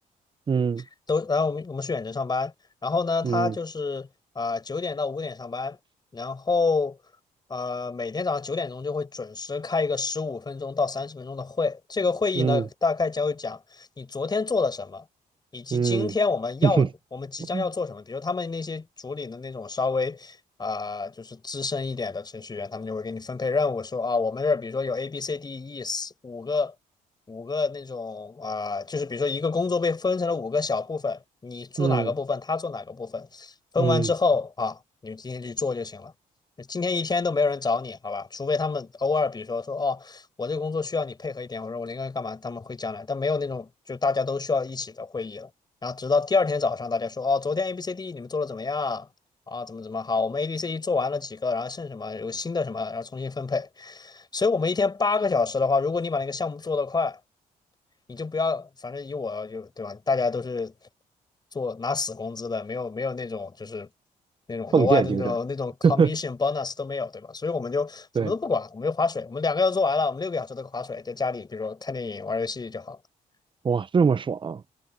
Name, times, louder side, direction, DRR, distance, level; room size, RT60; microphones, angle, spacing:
voice 1, 0.5-0.8 3.2-3.5 12.3-12.7 15.7-16.1 16.6-16.9 17.5-17.7 31.8-32.1 33.8-34.1 64.7-65.3 65.8-66.1 68.2-68.3 73.6-74.6, right 6 dB, 35° right, 0.8 m, -22 dB
voice 2, 1.1-2.5 2.8-4.1 4.4-5.8 6.1-7.0 7.5-15.0 15.5-26.7 27.3-36.1 36.6-45.5 45.8-49.1 49.5-57.2 58.1-60.7 61.5-63.9 64.5-73.0, left 4 dB, 30° left, 5.4 m, -28 dB
cardioid pair, 95°, 15 cm